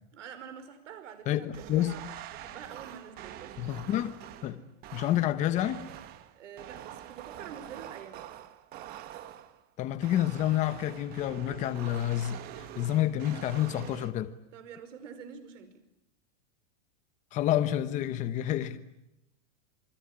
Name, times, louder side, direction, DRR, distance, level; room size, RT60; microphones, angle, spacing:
voice 1, 0.1-3.6 6.3-8.2 14.5-15.7 18.6-18.7, right 7 dB, 75° right, 5.4 m, -47 dB
voice 2, 1.3-2.0 3.6-4.2 4.4-4.6 4.9-5.8 9.8-14.3 17.3-18.8, left 12 dB, 20° left, 1.0 m, -29 dB
small room for interpretation, 1.5-9.6 10.0-14.1, right 12 dB, 25° right, 1.3 m, -45 dB
27.5 x 22.0 x 9.9 m
supercardioid pair, 170°, 37 cm